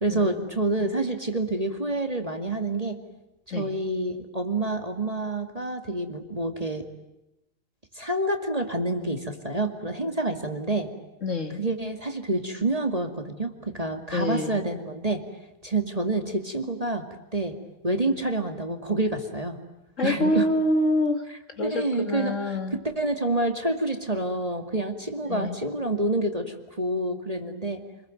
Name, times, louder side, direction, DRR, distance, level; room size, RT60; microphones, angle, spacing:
voice 1, 0.0-3.0 3.5-6.9 7.9-10.9 11.6-15.2 15.6-17.6 17.8-19.6 20.0-20.5 21.6-27.8, right 2 dB, 20° right, 5 dB, 2.3 m, -28 dB
voice 2, 11.2-11.6 14.1-14.6 20.0-21.3 21.6-22.8 25.2-25.6, left 1 dB, 45° left, 7 dB, 2.3 m, -26 dB
29.0 x 21.5 x 9.3 m, 0.94 s
omnidirectional pair, 1.9 m